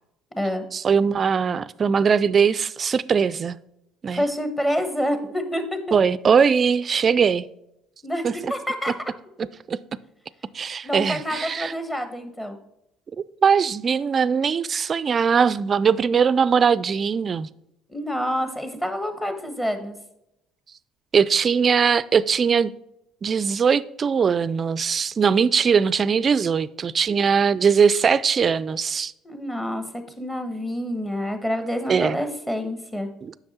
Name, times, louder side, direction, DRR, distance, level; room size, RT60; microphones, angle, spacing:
voice 1, 0.7-3.6 4.0-4.2 5.9-7.5 8.2-8.5 9.7-9.8 10.5-11.7 13.4-17.5 21.1-22.7 23.2-29.1 31.9-32.2 33.2-33.3, right 6 dB, 40° right, 0.4 m, -20 dB
voice 2, 4.1-5.8 8.0-8.9 10.8-12.6 17.9-20.0 29.2-29.9 30.2-33.1, equal, 15° left, 1.3 m, -27 dB
7.8 x 5.9 x 4.2 m
supercardioid pair, 80°, 0 cm